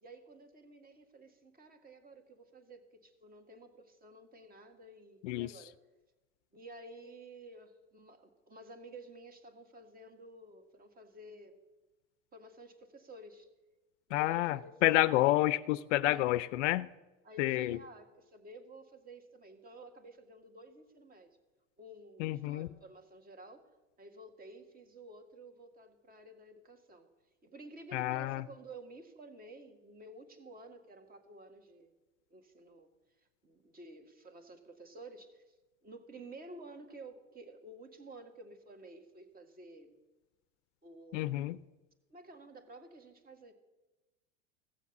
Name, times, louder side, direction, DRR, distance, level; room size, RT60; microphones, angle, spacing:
voice 1, 0.0-5.8 6.5-11.6 12.3-13.5 14.1-15.1 16.0-16.4 17.2-21.4 21.8-23.7 24.0-27.1 27.4-31.9 32.3-32.9 33.4-35.6 35.8-40.0 40.8-41.5 42.1-43.5, right 2 dB, 20° right, 7 dB, 1.8 m, -52 dB
voice 2, 14.1-16.9 17.4-17.8 22.2-22.7 27.9-28.4 41.1-41.6, left 16 dB, 65° left, 17 dB, 0.6 m, -29 dB
15.0 x 7.1 x 7.1 m, 1.1 s
hypercardioid pair, 115°, 39 cm